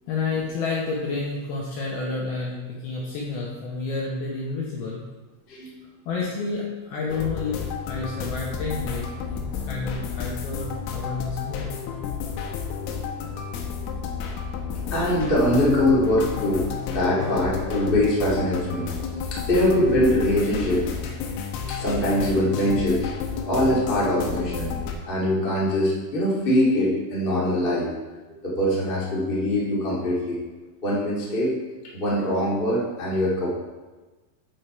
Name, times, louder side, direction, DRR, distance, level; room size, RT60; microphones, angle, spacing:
voice 1, 0.1-5.0 6.1-11.7, left 3 dB, 70° left, -4 dB, 2.6 m, -30 dB
sound 1, 7.1-24.9, left 6 dB, 85° left, 3.6 m, -31 dB
voice 2, 14.9-18.9 19.3-20.8 21.7-23.1 23.4-24.7 25.1-27.9 28.4-30.4 30.8-31.5 31.9-33.5, left 1 dB, 25° left, -6 dB, 1.3 m, -23 dB
8.5 x 8.5 x 4.5 m, 1.2 s
omnidirectional pair, 5.7 m